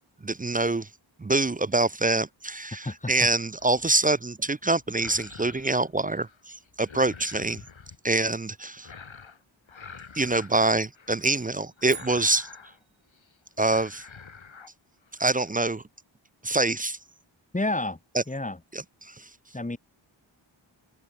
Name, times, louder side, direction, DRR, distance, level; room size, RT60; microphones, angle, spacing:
voice 1, 0.2-0.9 1.2-7.6 8.0-8.9 10.1-12.5 13.6-14.0 15.2-15.8 16.4-17.0 18.7-19.3, right 2 dB, 20° right, 0.5 m, -25 dB
voice 2, 2.8-3.3 17.5-18.0 18.3-18.6 19.5-19.8, left 2 dB, 15° left, 1.9 m, -30 dB
sound 1, 3.6-4.0 4.8-6.4 6.7-8.0 8.8-9.4 9.7-11.5 11.8-12.8 13.1-13.3 13.6-14.7 15.1-15.5, left 5 dB, 70° left, 5.6 m, -47 dB
sound 2, 11.2-13.1, right 8 dB, 75° right, 1.4 m, -47 dB
open air
cardioid pair, 60°, 48 cm